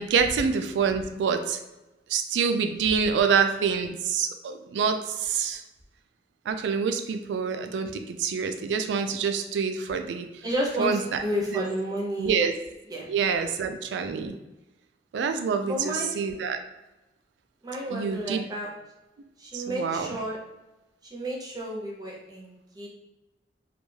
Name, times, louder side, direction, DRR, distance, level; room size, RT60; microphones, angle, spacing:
voice 1, 0.0-1.6 2.1-5.6 6.5-10.3 10.8-11.2 11.5-11.6 12.2-12.5 13.1-14.4 15.1-16.6 17.9-18.4 19.5-20.2, right 6 dB, 80° right, 7 dB, 0.3 m, -26 dB
voice 2, 10.4-12.4 12.9-13.1 15.6-16.1 17.6-18.7 19.4-20.4 21.0-22.9, equal, 20° right, -3 dB, 0.6 m, -31 dB
2.3 x 2.2 x 3.1 m, 1.0 s
head